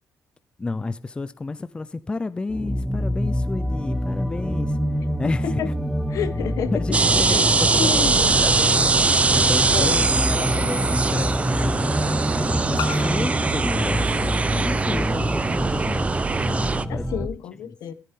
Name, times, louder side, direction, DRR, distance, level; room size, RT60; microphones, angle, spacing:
voice 1, 0.6-4.8 5.2-5.9 6.7-8.1 8.3-17.1 17.6-17.8, left 3 dB, 15° left, 0.6 m, -31 dB
sound 1, 2.5-17.3, equal, ahead, 1.2 m, -26 dB
voice 2, 6.1-6.8 7.3-7.5 7.8-8.3 9.7-10.1 16.9-17.9, left 9 dB, 70° left, 1.4 m, -29 dB
sound 2, 6.9-16.8, right 3 dB, 20° right, 0.7 m, -22 dB
sound 3, 12.8-15.3, left 11 dB, 85° left, 1.0 m, -38 dB
14.5 x 14.0 x 3.8 m
cardioid pair, 130°, 6 cm